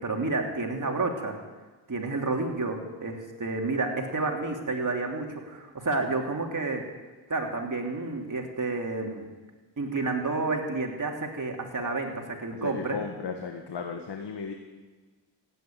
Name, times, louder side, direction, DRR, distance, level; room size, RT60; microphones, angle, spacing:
voice 1, 0.0-1.3 1.9-6.8 7.3-9.3 9.8-13.0, right 3 dB, 40° right, 2 dB, 3.1 m, -30 dB
voice 2, 12.5-14.5, left 5 dB, 60° left, 4 dB, 1.6 m, -35 dB
15.5 x 9.3 x 9.3 m, 1.3 s
cardioid pair, 50°, 46 cm